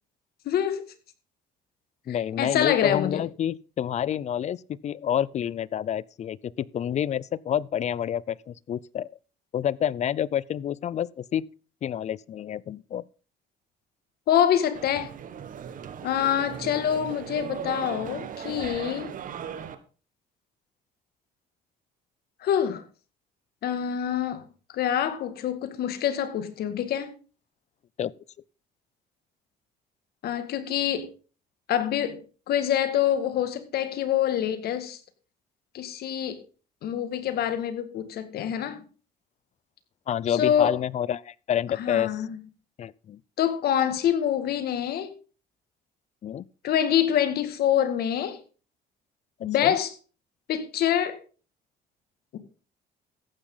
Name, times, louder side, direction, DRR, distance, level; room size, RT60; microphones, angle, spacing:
voice 1, 0.5-0.9 2.4-3.2 14.3-15.1 16.0-19.1 22.4-22.8 23.6-24.4 24.7-27.1 30.2-31.1 31.7-32.2 32.5-35.0 35.7-36.4 36.8-38.8 40.3-40.7 41.8-42.4 43.4-45.1 46.6-48.4 49.4-49.9 50.5-51.2 52.3-52.4, left 10 dB, 65° left, 2.0 m, -25 dB
voice 2, 2.1-9.1 9.5-11.5 11.8-13.0 28.0-28.1 40.1-42.2 42.8-43.2 46.2-46.5 49.4-49.8, left 9 dB, 40° left, 0.5 m, -28 dB
sound 1, 14.7-19.7, right 8 dB, 50° right, 1.5 m, -38 dB
14.5 x 10.0 x 3.9 m
cardioid pair, 110°, 17 cm